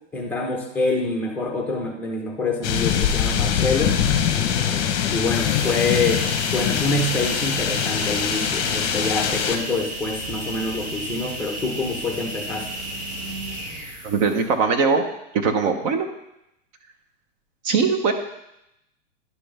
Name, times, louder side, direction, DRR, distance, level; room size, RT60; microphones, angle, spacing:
voice 1, 0.1-4.0 5.1-6.2 6.5-12.7, left 3 dB, 5° left, 0 dB, 1.0 m, -26 dB
sound 1, 2.6-9.6, left 8 dB, 35° left, 1.1 m, -23 dB
sound 2, 5.3-14.6, right 1 dB, 55° right, 2.6 m, -33 dB
voice 2, 14.0-15.0 15.3-16.1 17.6-18.1, right 5 dB, 35° right, 6 dB, 0.8 m, -20 dB
11.0 x 6.1 x 3.4 m, 0.85 s
hypercardioid pair, 150°, 39 cm